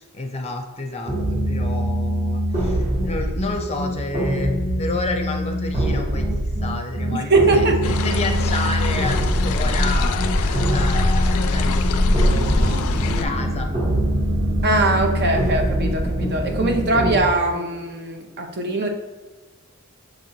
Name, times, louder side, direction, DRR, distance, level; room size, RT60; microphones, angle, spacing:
voice 1, 0.0-4.5 4.8-13.7, left 2 dB, 30° left, 4 dB, 0.5 m, -30 dB
sound 1, 1.1-17.2, equal, 30° right, 1.0 m, -24 dB
voice 2, 7.1-7.8 14.6-18.9, right 2 dB, 50° right, 3 dB, 0.7 m, -21 dB
sound 2, 7.8-13.2, left 2 dB, 85° left, 0.4 m, -23 dB
sound 3, 9.0-15.8, equal, 75° right, 1.0 m, -29 dB
6.4 x 2.9 x 2.7 m, 1.3 s
head